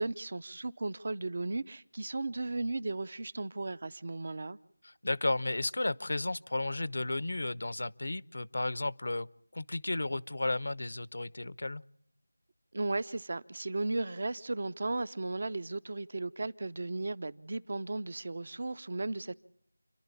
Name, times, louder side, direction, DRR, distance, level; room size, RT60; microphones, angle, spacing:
voice 1, 0.0-4.6 12.7-19.3, right 2 dB, 50° right, 0.8 m, -35 dB
voice 2, 4.8-9.3 9.5-11.8, left 2 dB, 65° left, 0.8 m, -33 dB
29.5 x 11.5 x 8.4 m
figure-of-eight pair, 170°, 0 cm